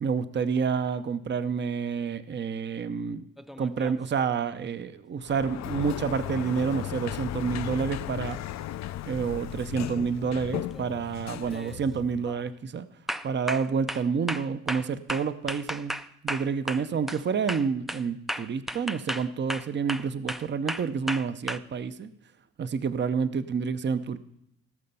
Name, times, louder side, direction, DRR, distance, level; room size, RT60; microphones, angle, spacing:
voice 1, 0.0-3.3 3.6-8.4 9.0-12.9 13.2-16.0 16.2-22.1 22.6-24.2, right 6 dB, 35° right, 13 dB, 0.7 m, -29 dB
sound 1, 3.4-4.1 8.3-8.4 9.9-10.2 10.7-11.0 11.5-11.8 12.2-12.5 13.1-17.2 17.5-21.6, equal, ahead, 0.4 m, -35 dB
Sliding door, 5.2-12.4, left 13 dB, 65° left, 0.5 m, -36 dB
17.0 x 6.6 x 5.5 m, 0.78 s
cardioid pair, 90°, 30 cm